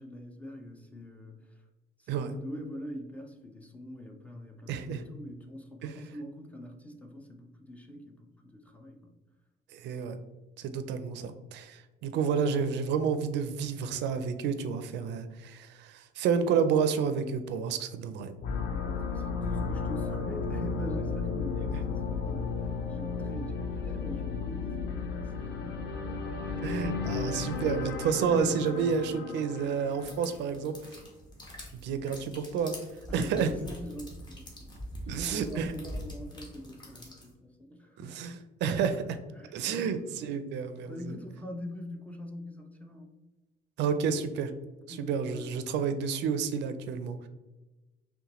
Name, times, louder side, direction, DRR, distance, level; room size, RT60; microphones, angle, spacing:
voice 1, 0.0-1.6 2.0-9.2 18.7-25.9 26.4-26.6 27.1-27.6 28.2-28.6 33.1-34.7 35.1-38.3 39.3-40.1 40.8-43.1 44.9-45.6, left 1 dB, 10° left, 3 dB, 0.4 m, -43 dB
voice 2, 4.7-5.0 5.8-6.0 9.7-10.2 10.6-18.3 21.7-21.8 26.6-31.0 31.7-32.7 33.1-33.5 35.1-35.7 38.0-39.2 39.5-41.2 43.8-44.5 44.9-47.2, right 6 dB, 75° right, 10 dB, 0.4 m, -30 dB
sound 1, 18.4-30.3, left 4 dB, 65° left, 0.5 m, -34 dB
sound 2, 29.9-37.3, equal, 25° left, 0.9 m, -44 dB
5.6 x 2.2 x 2.9 m, 1.1 s
cardioid pair, 150°, 18 cm